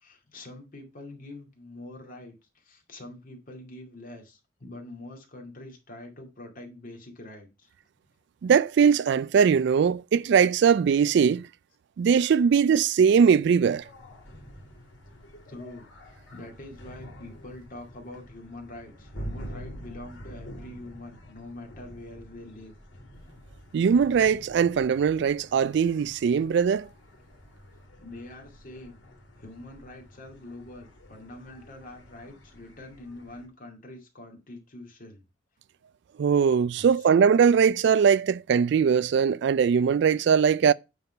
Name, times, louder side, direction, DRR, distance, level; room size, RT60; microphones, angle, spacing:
voice 1, 0.0-7.7 15.5-22.7 28.0-29.0 29.4-35.2 36.8-37.1, left 1 dB, 50° left, 2.3 m, -45 dB
voice 2, 8.4-11.5 12.0-13.9 23.7-26.9 36.2-40.7, right 7 dB, 65° right, 0.3 m, -21 dB
sound 1, 13.8-33.5, equal, 80° left, 2.7 m, -46 dB
9.2 x 3.8 x 5.6 m
head